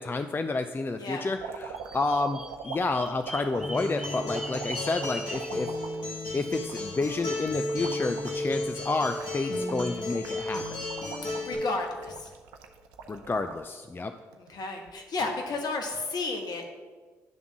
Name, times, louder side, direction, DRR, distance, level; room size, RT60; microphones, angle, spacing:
voice 1, 0.0-5.7 6.3-10.8 13.1-14.1, left 3 dB, 25° left, 8 dB, 0.4 m, -30 dB
sound 1, 1.4-13.7 14.2-14.9 15.9-16.1, right 6 dB, 85° right, 0.5 m, -43 dB
Bird vocalization bird call bird song, 1.7-5.6, equal, 5° right, 1.0 m, -41 dB
Acoustic guitar, 3.5-11.5, left 1 dB, 75° left, 1.9 m, -33 dB
voice 2, 11.3-12.3 14.5-16.8, left 3 dB, 60° left, 3 dB, 1.4 m, -32 dB
10.0 x 3.6 x 6.1 m, 1.4 s
hypercardioid pair, 45°, 8 cm